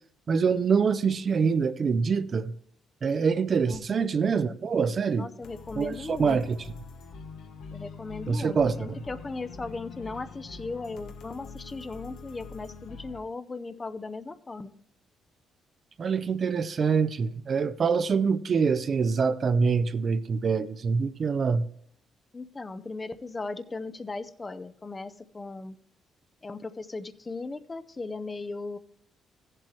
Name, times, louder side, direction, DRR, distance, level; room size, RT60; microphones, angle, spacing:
voice 1, 0.3-2.5 3.0-5.3 5.8-6.6 8.3-8.7 16.0-21.7, right 5 dB, 45° right, 0.5 m, -25 dB
voice 2, 3.6-4.1 5.1-6.4 7.7-14.7 22.3-25.8 26.4-28.8, left 3 dB, 25° left, 0.6 m, -37 dB
sound 1, 5.4-13.2, left 4 dB, 80° left, 1.2 m, -44 dB
14.5 x 7.6 x 3.2 m
cardioid pair, 90°, 0 cm